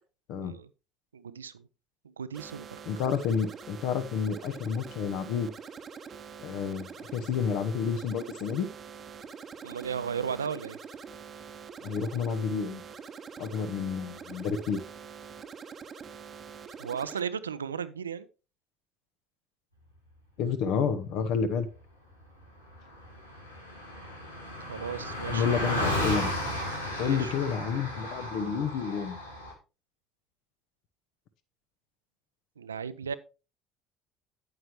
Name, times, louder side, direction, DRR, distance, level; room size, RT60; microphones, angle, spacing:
voice 1, 1.1-1.7 2.0-2.7 9.6-10.8 16.8-18.3 24.7-25.7 27.0-27.3 32.6-33.1, right 7 dB, 80° right, 15 dB, 0.4 m, -35 dB
sound 1, 2.3-17.2, right 6 dB, 35° right, 0.8 m, -45 dB
voice 2, 2.9-5.5 6.4-8.7 11.8-12.8 13.4-14.8 20.4-21.7 25.3-26.3 27.0-29.2, left 6 dB, 55° left, 12 dB, 1.2 m, -30 dB
Car passing by, 22.4-22.5 22.7-29.5, left 1 dB, 85° left, 1.9 m, -34 dB
9.2 x 8.9 x 3.1 m, 0.30 s
figure-of-eight pair, 60°, 0 cm